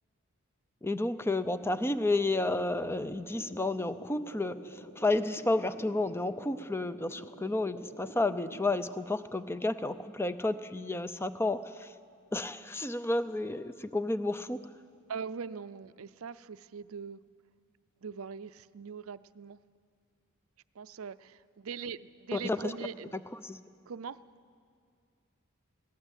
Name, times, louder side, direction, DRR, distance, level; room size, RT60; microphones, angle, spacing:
voice 1, 0.8-11.9 12.3-14.7 22.3-22.7 23.1-23.6, left 2 dB, 10° left, 12 dB, 0.6 m, -31 dB
sound 1, 1.3-8.8, equal, 85° left, 2.1 m, -49 dB
voice 2, 15.1-17.2 18.0-19.6 20.8-23.1 23.9-24.2, right 6 dB, 90° right, 15 dB, 0.5 m, -41 dB
22.0 x 17.0 x 8.3 m, 2.2 s
head